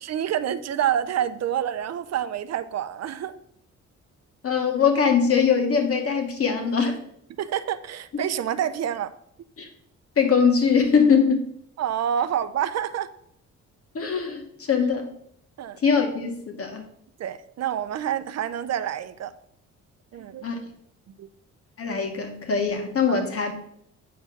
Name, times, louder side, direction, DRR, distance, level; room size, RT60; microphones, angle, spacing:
voice 1, 0.0-3.3 7.4-9.1 11.8-13.1 15.6-15.8 17.2-19.3 20.1-20.5 21.2-21.3 23.1-23.2, right 10 dB, 60° right, 12 dB, 0.6 m, -27 dB
voice 2, 4.4-7.0 9.6-9.7 10.2-11.5 13.9-15.1 15.8-16.8 20.4-20.5 21.8-23.5, left 6 dB, 50° left, 4 dB, 1.9 m, -22 dB
8.2 x 4.6 x 5.9 m, 0.69 s
cardioid pair, 90°, 30 cm